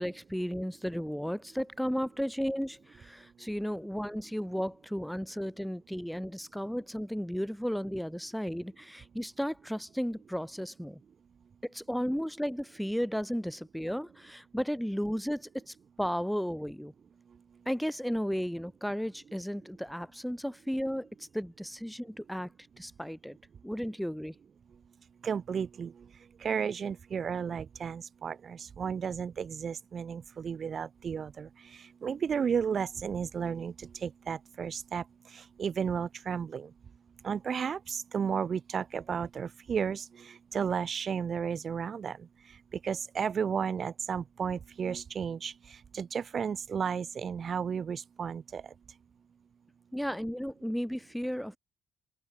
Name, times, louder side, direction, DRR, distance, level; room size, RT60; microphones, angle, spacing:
voice 1, 0.0-11.0 11.6-16.9 17.7-21.1 21.3-22.5 22.8-23.4 23.6-24.4 49.9-51.6, equal, ahead, 0.8 m, -34 dB
voice 2, 25.2-25.9 26.4-35.0 35.3-36.7 37.2-42.2 42.7-48.6, right 7 dB, 50° right, 0.5 m, -33 dB
open air
cardioid pair, 90°, 0 cm